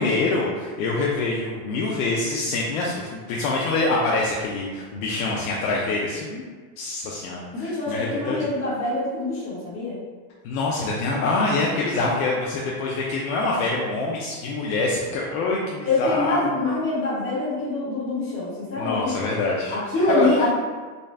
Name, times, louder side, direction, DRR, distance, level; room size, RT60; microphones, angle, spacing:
voice 1, 0.0-6.4 6.8-8.5 10.4-16.5 18.8-19.7 20.2-20.3, left 3 dB, 70° left, -4 dB, 0.7 m, -25 dB
voice 2, 7.5-10.0 15.8-19.1 19.7-20.5, left 2 dB, 25° left, -8 dB, 1.3 m, -24 dB
4.0 x 2.3 x 3.3 m, 1.5 s
supercardioid pair, 175°, 45 cm